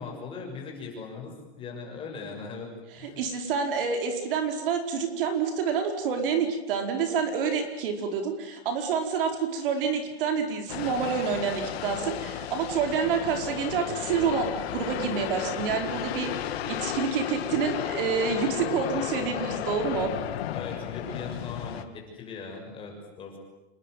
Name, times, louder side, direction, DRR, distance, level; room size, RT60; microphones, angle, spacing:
voice 1, 0.0-2.7 3.0-3.2 20.5-23.4, left 4 dB, 15° left, 1 dB, 6.6 m, -39 dB
voice 2, 3.0-20.1, right 6 dB, 55° right, 5 dB, 4.9 m, -28 dB
sound 1, 10.7-21.8, left 11 dB, 70° left, 2.8 m, -33 dB
28.0 x 22.0 x 9.4 m, 1.0 s
supercardioid pair, 175°, 32 cm